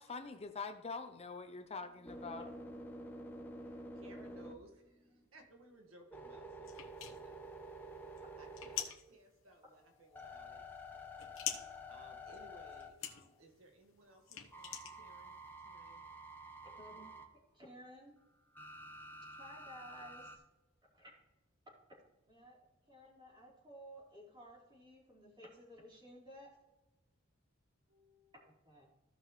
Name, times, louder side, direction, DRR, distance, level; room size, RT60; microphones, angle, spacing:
voice 1, 0.0-2.5, left 4 dB, 30° left, 7 dB, 0.6 m, -44 dB
sound 1, 1.8-5.3 5.7-9.2 9.7-13.4 14.5-17.3 18.5-20.4, equal, 10° left, 1.0 m, -50 dB
voice 2, 3.6-7.4 8.4-16.1 16.7-17.0 27.9-28.5, right 2 dB, 85° right, 2 dB, 1.7 m, -62 dB
sound 2, 6.6-15.5, left 9 dB, 70° left, 1.1 m, -46 dB
voice 3, 16.6-17.1 17.5-18.1 19.4-20.4 20.9-21.1 21.7-21.8 22.3-22.6 22.9-26.5 28.4-28.9, equal, 20° right, -5 dB, 3.5 m, -55 dB
15.5 x 5.9 x 3.1 m, 1.0 s
head